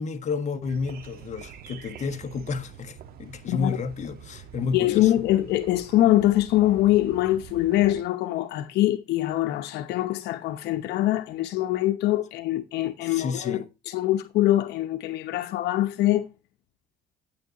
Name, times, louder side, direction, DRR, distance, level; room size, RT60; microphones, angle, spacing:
voice 1, 0.0-5.1 13.0-13.7, left 5 dB, 45° left, 1.3 m, -31 dB
sound 1, 0.6-8.0, right 8 dB, 65° right, 1.5 m, -45 dB
voice 2, 4.7-16.3, left 14 dB, 80° left, 0.9 m, -23 dB
9.4 x 9.0 x 2.9 m
cardioid pair, 110°, 17 cm